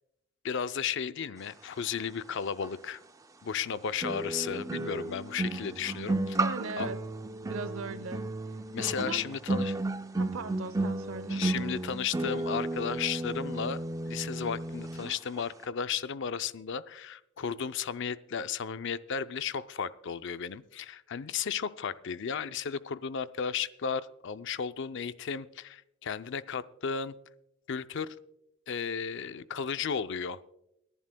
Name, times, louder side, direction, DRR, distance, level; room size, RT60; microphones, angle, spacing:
voice 1, 0.4-3.0 3.4-6.4 6.8-6.9 8.7-9.8 11.3-13.8 14.0-27.1 27.7-28.2 28.7-30.4, left 7 dB, 60° left, 13 dB, 0.5 m, -34 dB
sound 1, 2.6-2.7 4.0-15.1 15.4-15.6, right 2 dB, 15° right, 0.4 m, -33 dB
voice 2, 6.4-7.0 7.4-8.4 9.0-9.2 10.1-11.4, right 4 dB, 90° right, 15 dB, 0.7 m, -39 dB
29.0 x 11.0 x 2.2 m, 0.83 s
head